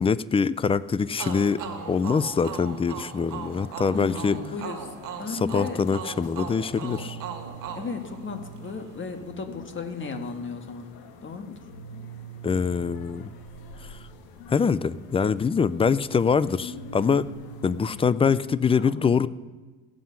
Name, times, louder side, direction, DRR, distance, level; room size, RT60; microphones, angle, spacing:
voice 1, 0.0-1.6 1.9-4.4 5.3-7.2 12.4-13.3 13.8-14.0 14.5-17.3 17.6-19.3, left 5 dB, 15° left, 18 dB, 0.3 m, -24 dB
sound 1, 1.2-18.1, equal, 80° left, 1.4 m, -44 dB
sound 2, 1.2-8.8, right 7 dB, 60° right, 1.7 m, -38 dB
voice 2, 3.9-5.8 7.7-10.9 11.2-11.6 18.8-19.0, left 4 dB, 35° left, 6 dB, 1.5 m, -35 dB
16.0 x 7.6 x 5.7 m, 1.3 s
cardioid pair, 100°, 36 cm